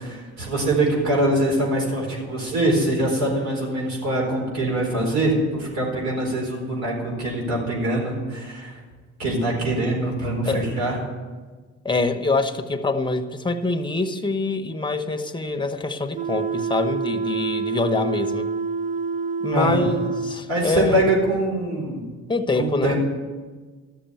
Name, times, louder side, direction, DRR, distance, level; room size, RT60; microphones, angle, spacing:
voice 1, 0.0-8.7 9.2-11.0 19.5-19.9 20.5-22.0 22.6-23.0, right 1 dB, 65° right, -2 dB, 4.4 m, -23 dB
voice 2, 11.8-18.5 19.4-21.1 22.3-23.0, left 3 dB, 15° left, 7 dB, 1.0 m, -25 dB
sound 1, 16.1-20.4, right 5 dB, 25° right, 0.6 m, -27 dB
13.0 x 6.9 x 9.0 m, 1.4 s
cardioid pair, 90°, 30 cm